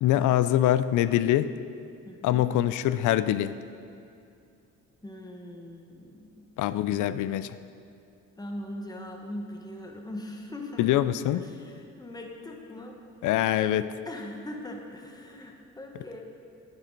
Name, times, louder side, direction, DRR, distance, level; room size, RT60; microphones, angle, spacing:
voice 1, 0.0-1.5 2.2-3.5 6.6-7.6 10.8-11.4 13.2-13.9, left 12 dB, 80° left, 14 dB, 0.5 m, -24 dB
voice 2, 2.0-2.4 5.0-6.3 8.4-11.0 11.3-13.0 14.0-16.2, left 1 dB, 15° left, 1 dB, 1.3 m, -40 dB
11.0 x 10.5 x 3.9 m, 2.5 s
cardioid pair, 90°, 30 cm